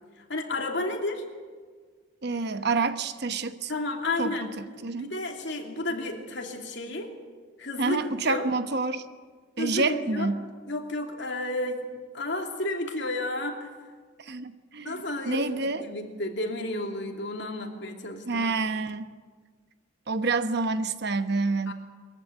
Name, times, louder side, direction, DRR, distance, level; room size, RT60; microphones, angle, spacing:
voice 1, 0.3-1.2 3.7-7.1 7.6-8.5 9.6-10.3 10.7-11.8 12.1-13.7 14.8-18.5 21.7-21.8, left 2 dB, 60° left, 3 dB, 2.9 m, -32 dB
voice 2, 2.2-3.7 4.2-5.1 7.8-9.0 9.6-10.4 14.3-15.9 18.3-19.0 20.1-21.7, right 3 dB, 55° right, 11 dB, 1.0 m, -28 dB
22.0 x 14.5 x 9.6 m, 1.5 s
head